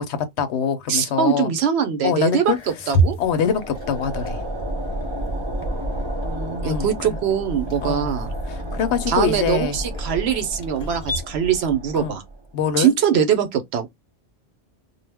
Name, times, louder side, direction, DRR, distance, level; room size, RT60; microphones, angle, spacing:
voice 1, 0.0-1.5 2.0-2.6 3.2-4.4 6.6-7.2 7.8-8.1 8.5-9.8 11.9-12.1 12.5-12.9, left 7 dB, 90° left, 0.9 m, -24 dB
voice 2, 0.9-2.5 2.9-3.2 6.2-8.3 9.1-12.2 12.8-13.9, right 8 dB, 75° right, 0.9 m, -22 dB
sound 1, 2.5-11.2, right 2 dB, 45° left, 0.6 m, -31 dB
sound 2, 3.2-12.5, right 1 dB, 30° right, 0.6 m, -31 dB
2.3 x 2.0 x 3.3 m
omnidirectional pair, 1.1 m